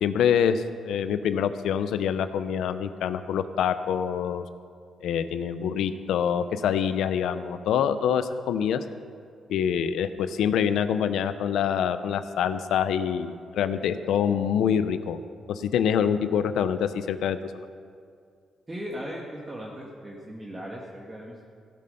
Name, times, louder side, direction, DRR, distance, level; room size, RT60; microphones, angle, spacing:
voice 1, 0.0-4.4 5.0-8.8 9.5-15.2 15.5-17.5, left 8 dB, 85° left, 11 dB, 0.6 m, -25 dB
voice 2, 18.7-21.4, equal, 20° right, -3 dB, 1.6 m, -38 dB
16.0 x 8.6 x 5.5 m, 2.2 s
cardioid pair, 100°, 0 cm